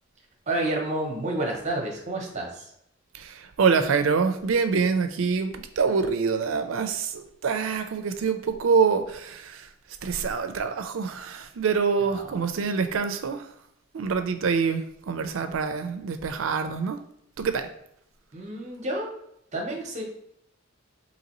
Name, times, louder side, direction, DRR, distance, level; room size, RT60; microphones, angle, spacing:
voice 1, 0.5-2.7 12.1-12.4 18.3-19.1 19.5-20.0, right 1 dB, 35° right, 0 dB, 0.8 m, -30 dB
voice 2, 3.1-9.7 10.0-13.5 13.9-17.0 17.4-17.7, right 5 dB, 80° right, 9 dB, 0.4 m, -25 dB
3.9 x 2.9 x 2.9 m, 0.73 s
head